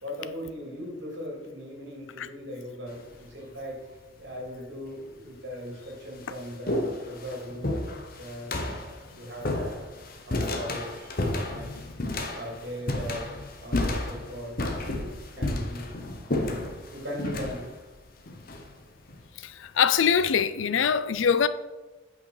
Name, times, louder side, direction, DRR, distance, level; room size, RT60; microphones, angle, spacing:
voice 1, 0.0-3.9 4.2-7.8 8.2-9.8 10.3-11.2 11.5-11.8 12.3-13.3 13.6-14.6 14.9-15.9 16.3-17.6, equal, 65° right, 2.8 m, -39 dB
sound 1, 2.9-3.3 4.3-4.4 5.2-5.3 5.7-19.2, left 2 dB, 50° left, 1.0 m, -32 dB
voice 2, 19.4-21.5, left 7 dB, 85° left, 0.5 m, -23 dB
8.2 x 5.7 x 4.9 m
head